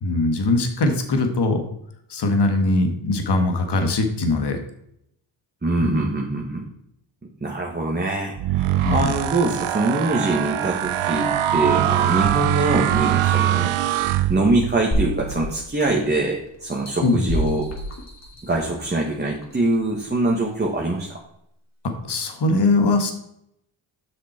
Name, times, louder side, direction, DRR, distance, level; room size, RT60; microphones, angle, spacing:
voice 1, 0.0-1.6 2.1-4.6 5.8-6.0 8.8-9.2 17.0-17.3 22.0-23.1, left 2 dB, 55° left, 6 dB, 1.7 m, -21 dB
voice 2, 5.6-6.7 7.4-13.8 14.3-17.7 18.4-21.1, right 2 dB, 20° right, -1 dB, 1.6 m, -23 dB
sound 1, 8.4-14.8, right 12 dB, 75° right, 0.7 m, -22 dB
sound 2, 14.9-16.2 16.7-18.8 19.4-19.5, equal, 30° left, 2.5 m, -28 dB
8.3 x 6.0 x 4.4 m, 0.76 s
cardioid pair, 70°, 49 cm